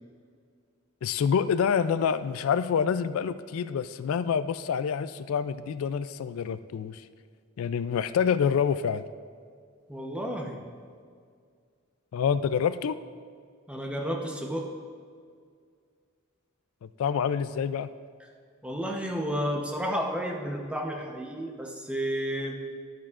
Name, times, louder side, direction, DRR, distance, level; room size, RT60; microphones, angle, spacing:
voice 1, 1.0-7.0 7.6-9.0 12.1-13.0 16.8-17.9, left 7 dB, 85° left, 13 dB, 0.3 m, -27 dB
voice 2, 9.9-10.6 13.7-14.7 18.6-22.6, equal, 5° right, 1 dB, 0.8 m, -31 dB
12.5 x 8.9 x 2.5 m, 2.1 s
head